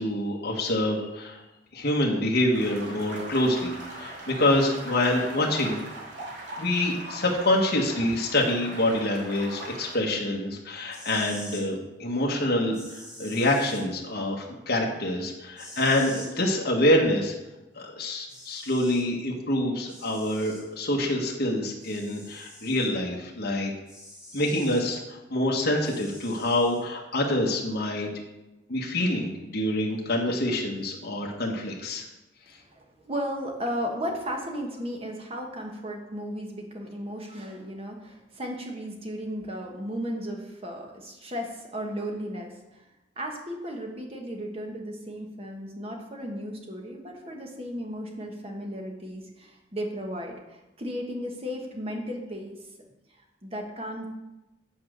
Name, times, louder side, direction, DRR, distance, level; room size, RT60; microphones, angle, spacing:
voice 1, 0.0-1.4 1.7-5.8 6.6-17.3 17.7-23.7 24.3-28.1 28.7-32.0, left 1 dB, 55° left, -2 dB, 1.2 m, -26 dB
sound 1, 2.5-10.0, right 1 dB, 65° right, 2.4 m, -40 dB
voice 2, 6.2-6.6 32.5-42.8 43.2-52.6 53.2-54.1, equal, 30° right, 1 dB, 1.3 m, -35 dB
sound 2, 10.9-11.6 12.7-13.8 15.6-16.3 17.8-17.9 18.3-19.1 19.9-20.6 21.8-22.9 23.9-24.8 25.8-26.8, left 1 dB, 5° right, 2.2 m, -45 dB
8.5 x 4.9 x 6.5 m, 1.0 s
head